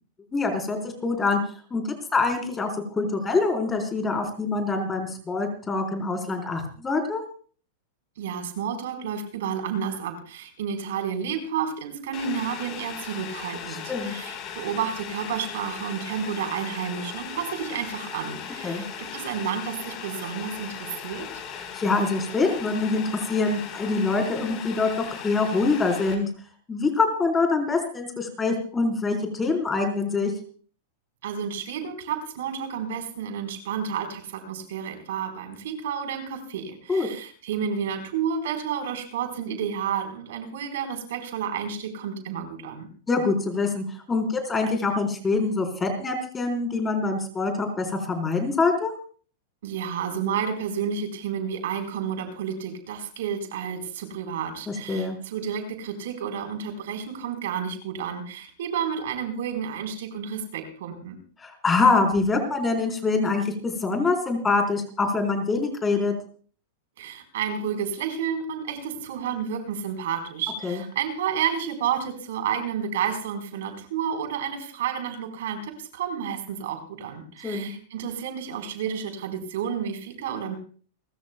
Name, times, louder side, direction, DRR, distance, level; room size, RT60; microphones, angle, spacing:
voice 1, 0.3-1.4 1.7-1.8 2.1-7.2 13.9-14.1 18.6-18.8 21.5-23.0 23.3-24.9 25.2-26.3 26.7-30.3 36.9-37.1 43.1-48.9 54.7-55.2 61.4-66.1 70.6-70.8 77.4-77.7, left 3 dB, 15° left, 3 dB, 4.0 m, -25 dB
voice 2, 8.2-21.3 31.2-42.9 49.6-61.2 67.0-80.5, right 7 dB, 75° right, 6 dB, 4.1 m, -31 dB
Boiling, 12.1-26.1, left 8 dB, 40° left, 4.1 m, -38 dB
29.5 x 14.0 x 2.3 m, 0.42 s
supercardioid pair, 135°, 0 cm